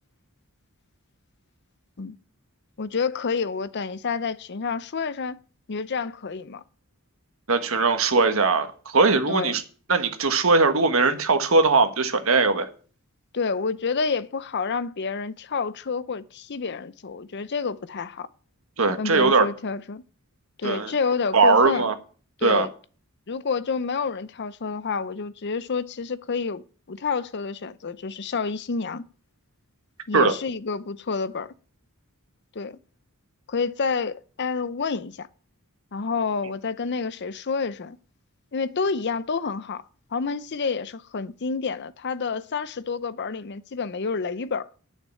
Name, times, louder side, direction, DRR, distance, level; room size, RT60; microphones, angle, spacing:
voice 1, 2.8-5.4 5.7-6.6 9.3-9.6 13.3-18.3 19.0-20.0 20.6-21.9 22.4-22.7 23.3-29.0 30.1-31.5 32.6-32.8 33.5-35.3 35.9-38.0 38.5-39.8 40.1-44.7, left 5 dB, 50° left, 0.6 m, -29 dB
voice 2, 7.5-9.6 9.9-12.7 18.8-19.5 20.6-20.9 21.3-21.9 22.4-22.7 30.1-30.3, right 4 dB, 65° right, 1.4 m, -20 dB
9.2 x 6.7 x 8.8 m
head